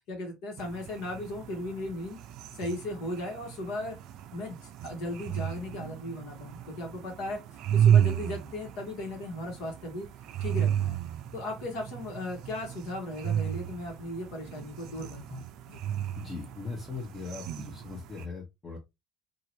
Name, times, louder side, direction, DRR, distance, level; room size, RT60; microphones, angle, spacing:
voice 1, 0.1-2.2 2.5-4.0 4.3-7.4 7.7-10.1 10.4-11.0 11.3-15.8, left 1 dB, 75° left, 1.3 m, -37 dB
sound 1, 0.6-18.2, right 9 dB, 65° right, 0.4 m, -32 dB
voice 2, 16.1-18.8, left 4 dB, 25° left, 0.8 m, -39 dB
2.8 x 2.5 x 2.9 m
supercardioid pair, 110°, 0 cm